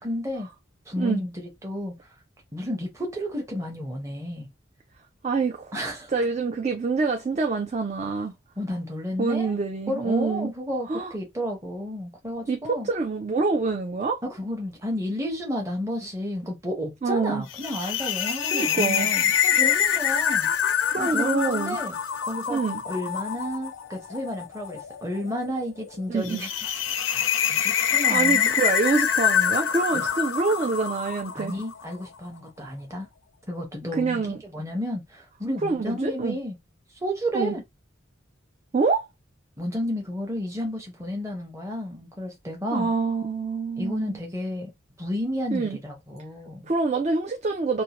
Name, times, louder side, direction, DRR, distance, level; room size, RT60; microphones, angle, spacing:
voice 1, 0.0-0.5 0.9-2.0 2.5-4.5 5.7-6.1 8.6-9.5 9.9-12.9 14.2-20.5 21.0-22.0 22.3-22.6 22.8-26.5 26.9-28.5 29.9-30.1 31.3-33.1 33.5-36.6 37.0-37.6 39.6-42.9 43.8-44.7 45.0-46.7, equal, 15° right, 0.8 m, -32 dB
voice 2, 5.2-5.7 6.1-8.3 9.2-10.5 10.9-11.1 12.5-14.2 17.0-17.4 18.5-19.1 20.9-21.8 22.5-22.8 26.1-26.4 27.6-27.8 28.1-31.5 33.9-34.4 35.6-36.4 37.3-37.5 38.7-39.1 42.7-44.2 45.5-45.8 46.7-47.8, right 4 dB, 35° right, 0.3 m, -26 dB
sound 1, 17.5-31.8, left 8 dB, 75° left, 0.4 m, -25 dB
2.6 x 2.1 x 2.9 m
head